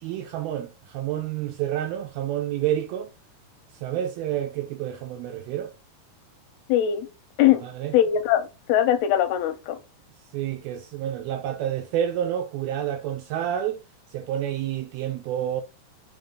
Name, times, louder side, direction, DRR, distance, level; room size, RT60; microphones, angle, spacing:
voice 1, 0.0-3.1 3.8-5.7 7.6-8.0 10.3-13.8 14.1-15.6, right 11 dB, 80° right, 2.2 m, -29 dB
voice 2, 6.7-7.1 7.4-7.6 7.9-9.8, left 11 dB, 80° left, 2.3 m, -21 dB
5.9 x 3.9 x 5.0 m
omnidirectional pair, 4.9 m